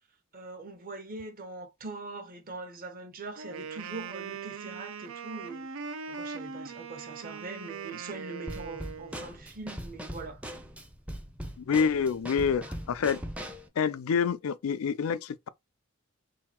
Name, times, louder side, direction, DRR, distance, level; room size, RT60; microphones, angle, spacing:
voice 1, 0.3-5.7 6.1-10.4, right 3 dB, 45° right, 1.0 m, -42 dB
Wind instrument woodwind instrument, 3.3-9.2, right 5 dB, 75° right, 0.6 m, -40 dB
Drum kit / Snare drum, 8.5-13.7, equal, 5° right, 0.6 m, -40 dB
voice 2, 11.6-13.2 13.8-15.5, left 6 dB, 80° left, 0.4 m, -27 dB
3.8 x 2.4 x 4.3 m
head